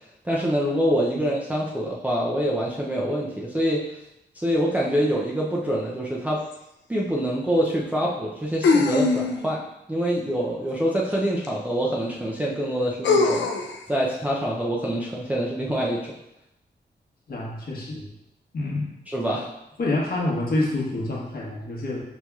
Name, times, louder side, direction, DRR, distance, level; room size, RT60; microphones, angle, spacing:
voice 1, 0.2-3.8 4.4-6.4 6.9-9.6 9.9-13.4 13.9-16.1 19.1-19.5, equal, 10° right, -5 dB, 0.4 m, -25 dB
sound 1, 6.5-6.6 8.6-9.6 11.4-11.5 13.0-13.8, left 4 dB, 90° left, 0.4 m, -21 dB
voice 2, 17.3-18.1 18.5-18.9 19.8-22.0, left 2 dB, 55° left, -4 dB, 1.0 m, -27 dB
6.0 x 2.7 x 2.3 m, 0.84 s
wide cardioid pair, 150°, 18 cm